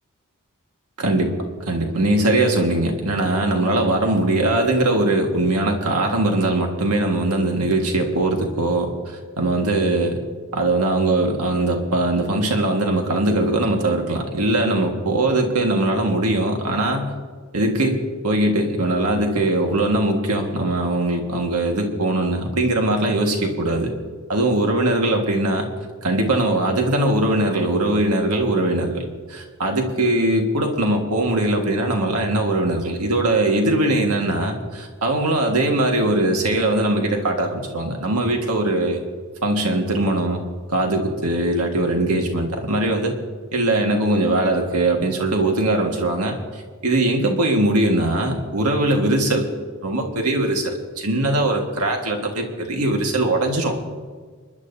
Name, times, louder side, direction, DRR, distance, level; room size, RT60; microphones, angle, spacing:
voice 1, 1.0-1.3 1.7-10.2 10.5-17.1 17.5-23.9 24.3-25.7 26.0-39.0 39.4-40.4 40.7-43.1 43.5-49.5 49.8-53.8, right 1 dB, 90° right, 2 dB, 1.7 m, -21 dB
29.0 x 11.0 x 2.8 m, 1.6 s
head